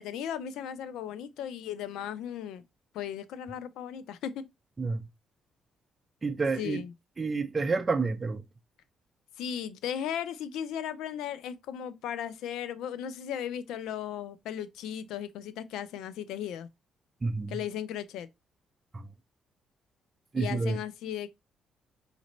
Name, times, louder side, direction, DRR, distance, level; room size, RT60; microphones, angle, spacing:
voice 1, 0.0-2.6 2.9-4.5 6.6-6.9 9.4-16.7 17.5-18.3 20.4-21.3, left 9 dB, 90° left, 0.4 m, -36 dB
voice 2, 6.2-6.8 7.2-8.4 17.2-17.6 18.9-19.1 20.3-20.8, right 4 dB, 30° right, 0.5 m, -29 dB
5.0 x 2.6 x 3.0 m
cardioid pair, 90°, 0 cm